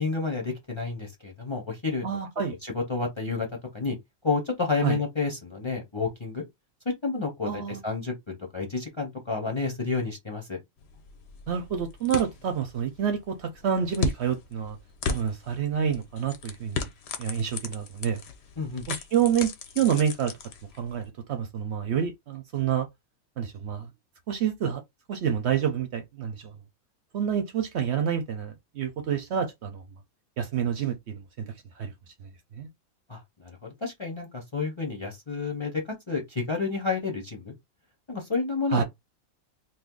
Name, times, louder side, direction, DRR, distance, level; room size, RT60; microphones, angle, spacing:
voice 1, 0.0-2.0 2.6-3.5 3.7-4.0 4.2-6.4 6.8-10.6 18.6-18.8 33.1-37.5 38.1-38.8, left 4 dB, 25° left, 0.8 m, -30 dB
voice 2, 2.0-2.6 4.8-5.0 7.4-7.8 11.5-14.8 15.1-16.9 17.2-18.2 18.9-20.4 20.8-22.9 23.4-23.9 24.3-24.8 25.1-26.5 27.1-30.0 30.4-31.9 32.2-32.7 38.7-38.8, right 8 dB, 60° right, 0.8 m, -28 dB
sound 1, 10.8-21.1, left 5 dB, 60° left, 0.8 m, -37 dB
2.7 x 2.5 x 3.7 m
omnidirectional pair, 1.5 m